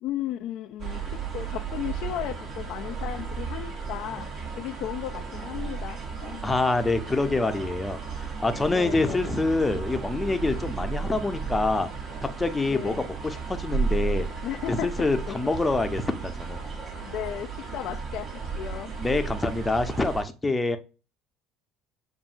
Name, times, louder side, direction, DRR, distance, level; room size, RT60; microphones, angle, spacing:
voice 1, 0.0-4.3 4.6-6.4 8.7-9.3 12.7-13.0 14.4-15.4 16.9-18.3 18.5-18.9, left 12 dB, 60° left, 0.3 m, -35 dB
sound 1, 0.8-20.2, right 5 dB, 45° right, 1.2 m, -34 dB
voice 2, 6.4-11.9 12.2-14.3 14.7-16.6 19.0-20.8, left 3 dB, 15° left, 0.7 m, -26 dB
7.0 x 2.6 x 2.6 m
hypercardioid pair, 70°, 0 cm